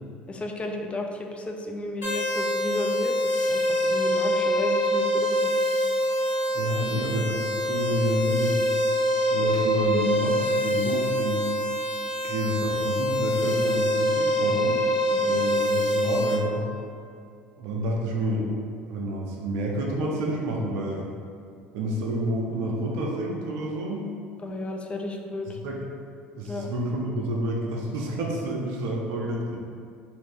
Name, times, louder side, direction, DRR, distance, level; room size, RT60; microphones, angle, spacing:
voice 1, 0.3-5.5 15.1-15.4 24.4-25.6 26.5-26.7, left 1 dB, 20° left, 2 dB, 0.4 m, -33 dB
sound 1, 2.0-16.3, equal, 80° left, 1.1 m, -25 dB
voice 2, 6.5-8.8 9.3-11.5 12.2-14.8 15.2-16.7 17.6-18.5 18.9-21.1 21.7-24.1 25.6-25.8 26.4-29.6, equal, 65° right, -1 dB, 0.5 m, -29 dB
2.5 x 2.5 x 3.5 m, 2.3 s
hypercardioid pair, 70°, 5 cm